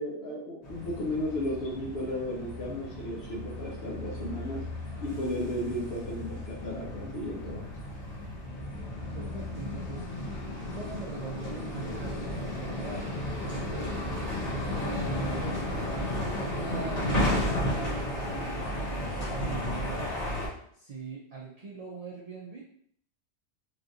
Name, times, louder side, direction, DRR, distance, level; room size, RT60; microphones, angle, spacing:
voice 1, 0.0-4.6 5.0-7.7, left 1 dB, 65° left, -3 dB, 0.9 m, -34 dB
sound 1, 0.6-20.5, left 1 dB, 40° left, 0.9 m, -34 dB
voice 2, 8.2-8.5 9.1-10.1 10.7-13.1 13.4-15.8 16.2-20.2 20.7-22.6, right 5 dB, 70° right, -4 dB, 0.3 m, -41 dB
3.1 x 2.5 x 2.7 m, 0.65 s
omnidirectional pair, 1.2 m